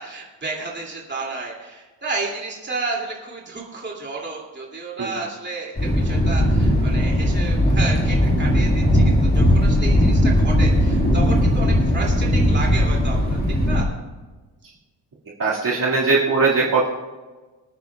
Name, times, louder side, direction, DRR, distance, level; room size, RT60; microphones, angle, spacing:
voice 1, 0.0-13.4 13.6-13.9, right 3 dB, 25° right, -2 dB, 2.7 m, -31 dB
Thunder, 5.8-13.8, equal, 20° left, 2.0 m, -18 dB
voice 2, 15.4-16.9, right 4 dB, 45° right, -5 dB, 2.2 m, -19 dB
25.0 x 9.6 x 2.4 m, 1.3 s
wide cardioid pair, 145°, 45 cm